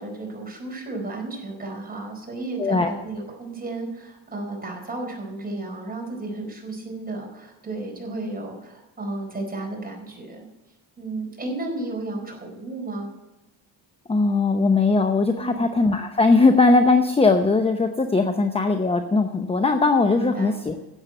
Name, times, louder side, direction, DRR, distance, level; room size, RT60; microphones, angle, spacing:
voice 1, 0.0-10.5 11.0-13.1 15.4-15.6 20.2-20.6, right 2 dB, 20° right, 1 dB, 4.5 m, -33 dB
voice 2, 2.6-2.9 14.1-20.7, left 3 dB, 15° left, 7 dB, 0.8 m, -19 dB
11.0 x 8.2 x 7.7 m, 1.0 s
cardioid pair, 110°, 43 cm